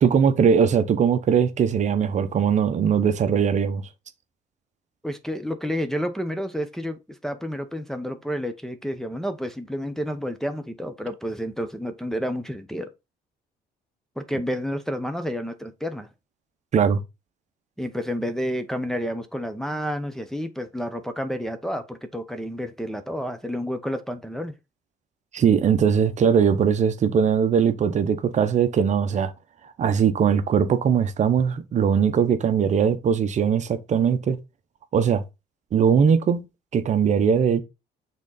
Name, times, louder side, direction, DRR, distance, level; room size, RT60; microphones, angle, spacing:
voice 1, 0.0-3.8 16.7-17.0 25.3-29.3 29.8-34.4 34.9-35.2 35.7-36.4 36.7-37.6, right 7 dB, 45° right, 0.8 m, -20 dB
voice 2, 5.0-12.9 14.2-16.1 17.8-24.5, equal, 5° left, 0.7 m, -30 dB
6.3 x 3.7 x 4.0 m
cardioid pair, 110°, 17 cm